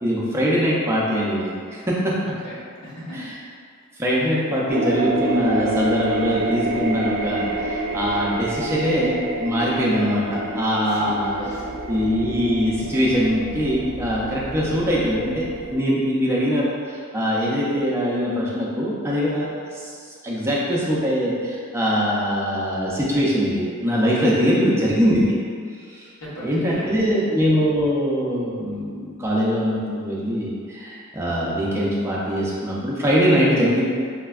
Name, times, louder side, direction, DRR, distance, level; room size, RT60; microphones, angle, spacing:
voice 1, 0.0-2.1 3.1-3.4 4.0-11.3 11.9-15.5 15.7-19.9 20.2-25.4 25.9-26.1 26.4-33.8, equal, 10° right, -6 dB, 0.4 m, -22 dB
voice 2, 2.4-3.2 10.9-11.1 11.4-11.8 26.2-26.9, equal, 80° left, -9 dB, 1.0 m, -37 dB
sound 1, 4.7-15.8, right 2 dB, 80° right, 0.4 m, -28 dB
4.1 x 2.1 x 2.3 m, 2.2 s
head